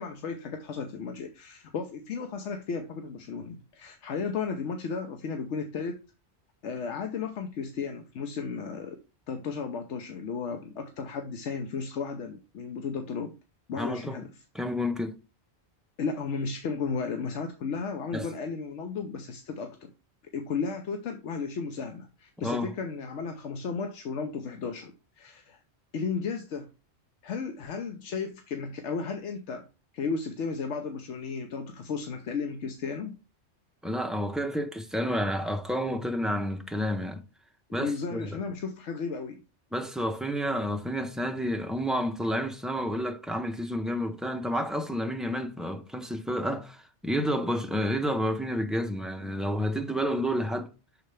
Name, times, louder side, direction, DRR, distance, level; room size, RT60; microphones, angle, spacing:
voice 1, 0.0-6.0 6.6-9.0 9.3-13.3 13.7-14.3 16.0-19.9 20.3-25.6 25.9-26.7 27.2-29.7 29.9-33.2 37.7-39.4, left 5 dB, 85° left, 1.1 m, -34 dB
voice 2, 13.7-14.2 14.5-15.2 18.1-18.3 22.4-22.7 33.8-37.2 37.7-38.4 39.7-50.7, equal, ahead, 0.5 m, -30 dB
6.5 x 4.6 x 3.2 m
omnidirectional pair, 1.2 m